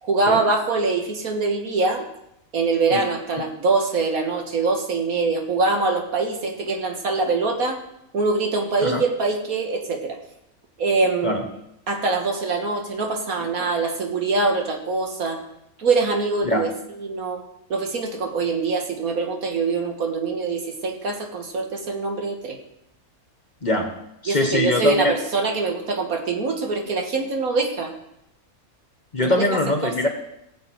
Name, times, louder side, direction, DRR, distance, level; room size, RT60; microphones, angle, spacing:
voice 1, 0.0-2.1 2.5-7.8 8.1-10.2 10.8-11.4 11.9-15.4 15.8-16.7 17.0-17.4 17.7-22.6 24.3-27.9 29.2-29.4 29.8-29.9, right 3 dB, 80° right, 3 dB, 2.0 m, -23 dB
voice 2, 23.6-23.9 24.2-25.1 29.1-30.1, left 1 dB, 35° left, 4 dB, 1.2 m, -22 dB
17.5 x 7.5 x 4.7 m, 0.82 s
omnidirectional pair, 1.5 m